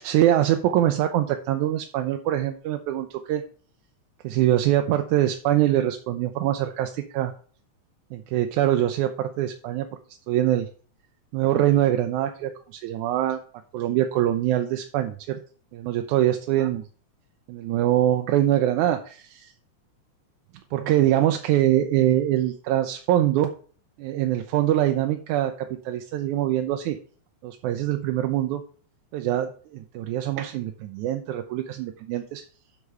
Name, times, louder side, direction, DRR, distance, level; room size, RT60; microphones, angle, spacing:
voice 1, 0.0-3.4 4.2-7.3 8.1-9.9 10.3-10.7 11.3-13.4 13.7-15.4 15.7-16.8 17.5-19.5 20.7-23.5 24.0-25.5 25.9-27.0 27.4-28.6 29.1-32.4, right 12 dB, 85° right, 6 dB, 2.1 m, -23 dB
8.1 x 5.9 x 5.4 m, 0.43 s
omnidirectional pair, 3.5 m